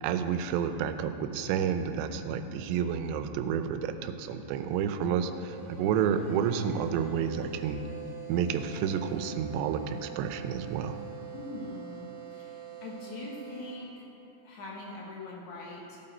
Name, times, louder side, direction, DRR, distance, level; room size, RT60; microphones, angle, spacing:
voice 1, 0.0-7.8 8.3-11.0, right 8 dB, 85° right, 9 dB, 2.7 m, -30 dB
sound 1, 3.6-13.7, right 9 dB, 50° right, 1.9 m, -46 dB
voice 2, 11.3-14.0 14.4-16.0, left 2 dB, 85° left, -3 dB, 1.6 m, -42 dB
15.5 x 7.9 x 4.4 m, 2.9 s
omnidirectional pair, 5.0 m